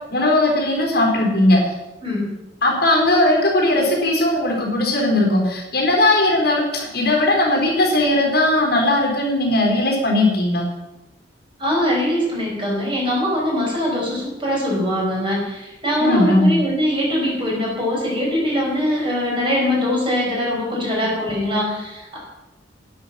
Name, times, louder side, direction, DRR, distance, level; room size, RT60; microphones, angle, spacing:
voice 1, 0.1-1.7 2.6-10.6 16.0-16.6, left 1 dB, 60° left, 0 dB, 4.1 m, -18 dB
voice 2, 2.0-2.3 11.6-22.2, left 1 dB, 30° right, -3 dB, 5.0 m, -22 dB
12.0 x 10.5 x 5.8 m, 0.99 s
head